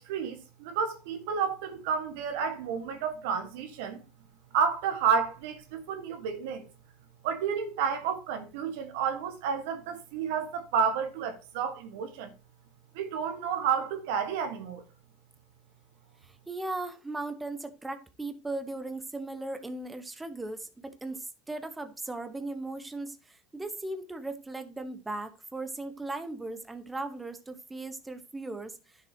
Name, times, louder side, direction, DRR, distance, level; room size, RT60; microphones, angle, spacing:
voice 1, 0.0-4.0 4.5-6.7 7.2-12.3 12.9-14.8, right 6 dB, 75° right, 1.5 m, -30 dB
voice 2, 16.2-28.8, right 2 dB, 10° right, 1.0 m, -37 dB
10.5 x 6.7 x 2.9 m
supercardioid pair, 105°, 0 cm